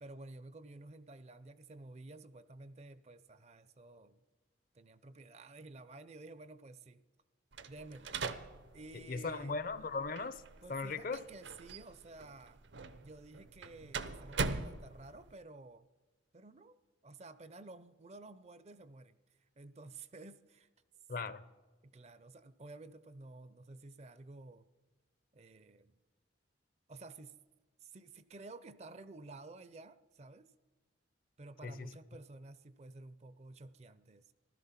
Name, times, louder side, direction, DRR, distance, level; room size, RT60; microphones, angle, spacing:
voice 1, 0.0-4.2 4.7-7.0 7.7-8.2 8.7-9.6 10.6-12.6 13.0-15.9 16.3-16.8 17.0-19.2 19.6-20.7 21.8-24.7 25.3-26.0 26.9-27.4 27.8-30.5 31.4-34.3, right 2 dB, 35° right, 15 dB, 0.5 m, -52 dB
sound 1, 7.5-15.3, right 4 dB, 70° right, 0.8 m, -42 dB
voice 2, 9.1-10.4 10.7-11.2 21.1-21.4 31.6-31.9, left 4 dB, 45° left, 15 dB, 0.6 m, -38 dB
15.0 x 12.5 x 5.8 m, 1.3 s
head